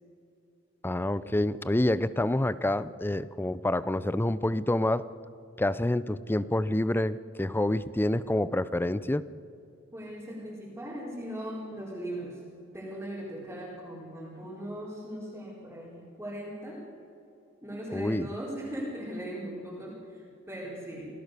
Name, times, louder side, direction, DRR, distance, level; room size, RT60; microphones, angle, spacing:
voice 1, 0.8-5.1 5.6-9.3 17.9-18.3, left 1 dB, 10° left, 16 dB, 0.5 m, -27 dB
voice 2, 9.9-12.4 12.7-16.8 17.6-21.1, right 1 dB, 10° right, -8 dB, 4.6 m, -39 dB
28.0 x 17.0 x 6.9 m, 2.7 s
head